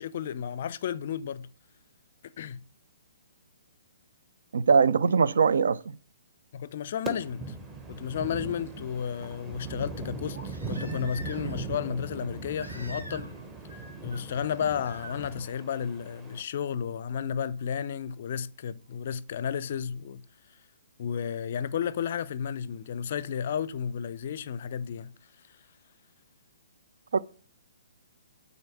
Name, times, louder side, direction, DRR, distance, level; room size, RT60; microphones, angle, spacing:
voice 1, 0.0-1.5 2.2-2.6 6.5-7.5 7.9-13.3 14.0-20.2 21.0-25.1, left 8 dB, 45° left, 0.5 m, -32 dB
voice 2, 4.5-6.0 27.1-27.2, right 5 dB, 60° right, 0.4 m, -22 dB
sound 1, 7.1-16.4, right 3 dB, 15° right, 1.1 m, -39 dB
Crying sobbing, 10.3-11.6 12.6-13.4 13.7-14.2 14.8-15.2 16.8-16.9, equal, 85° right, 2.6 m, -45 dB
9.4 x 4.0 x 6.1 m
figure-of-eight pair, 125°, 0 cm